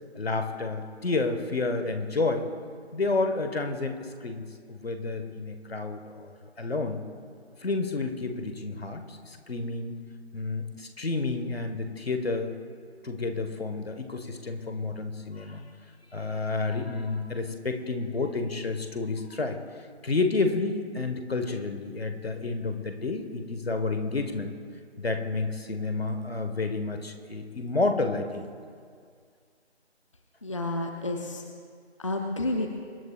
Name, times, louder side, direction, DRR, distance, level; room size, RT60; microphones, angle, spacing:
voice 1, 0.1-2.5 2.9-6.3 6.6-7.0 7.6-9.9 10.3-12.5 13.0-15.6 16.1-19.6 20.0-24.5 25.0-28.5, left 3 dB, 65° left, 6 dB, 1.5 m, -30 dB
voice 2, 30.4-31.4 32.0-32.8, left 2 dB, 30° left, 3 dB, 0.6 m, -30 dB
25.0 x 11.0 x 2.4 m, 2.1 s
figure-of-eight pair, 160°, 33 cm